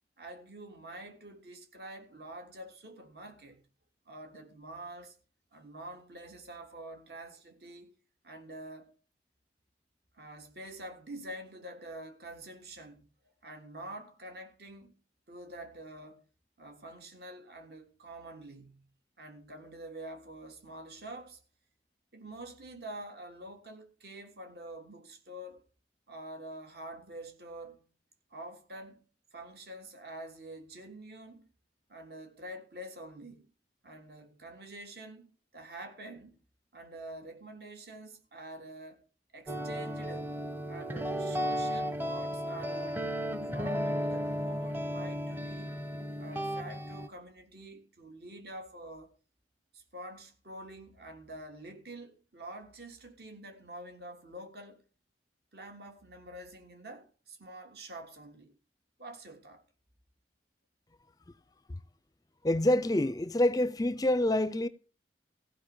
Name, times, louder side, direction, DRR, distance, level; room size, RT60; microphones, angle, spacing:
voice 1, 0.2-3.6 4.0-5.2 5.5-7.9 8.2-8.9 10.1-13.1 13.4-15.0 15.3-16.2 16.6-18.9 19.2-21.4 22.1-25.7 26.1-27.8 28.3-29.0 29.3-31.5 31.9-33.5 33.8-36.4 36.7-39.0 39.3-40.3 40.7-43.1 43.5-45.8 46.2-49.1 49.7-54.8 55.5-58.5 59.0-59.6, right 1 dB, 60° right, 3.2 m, -47 dB
sound 1, 39.5-47.1, equal, 10° right, 0.9 m, -34 dB
voice 2, 62.4-64.7, left 1 dB, 20° left, 0.5 m, -26 dB
15.5 x 5.3 x 8.5 m
head